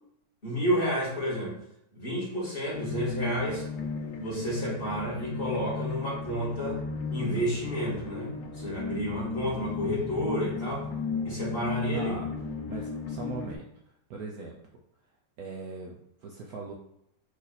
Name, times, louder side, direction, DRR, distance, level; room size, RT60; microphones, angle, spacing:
voice 1, 0.4-1.5 1.9-3.6 4.2-6.8 7.1-10.9 11.2-12.2, equal, 30° left, -7 dB, 1.7 m, -30 dB
sound 1, 2.7-13.6, left 4 dB, 85° left, 1.4 m, -35 dB
voice 2, 11.9-12.3 12.7-13.7 14.1-14.6 15.4-16.7, right 3 dB, 65° right, -1 dB, 1.0 m, -40 dB
4.7 x 2.7 x 4.0 m, 0.74 s
omnidirectional pair, 1.9 m